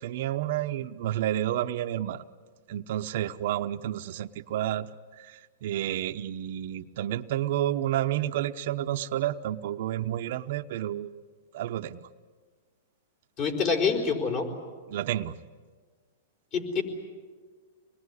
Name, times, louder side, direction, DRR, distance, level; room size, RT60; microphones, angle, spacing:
voice 1, 0.0-2.2 2.7-4.9 5.2-11.1 11.5-12.1 14.9-15.4, right 12 dB, 60° right, 8 dB, 0.9 m, -30 dB
voice 2, 13.4-14.5 16.5-16.8, left 5 dB, 35° left, 4 dB, 4.7 m, -26 dB
26.5 x 21.0 x 9.7 m, 1.5 s
hypercardioid pair, 150°, 0 cm